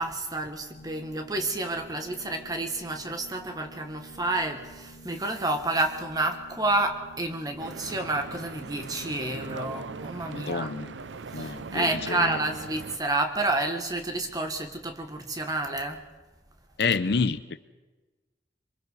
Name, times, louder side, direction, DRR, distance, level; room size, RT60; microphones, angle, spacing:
voice 1, 0.0-10.7 11.4-16.0, right 2 dB, 20° right, 1.4 m, -30 dB
Organ, 0.6-11.3, right 1 dB, 85° left, 1.6 m, -50 dB
Stream / Boat Water vehicle, 7.6-13.0, right 4 dB, 80° right, 0.6 m, -40 dB
voice 2, 10.3-11.0 11.3-12.4 16.8-17.6, left 4 dB, 60° left, 0.6 m, -28 dB
26.5 x 24.0 x 4.1 m
head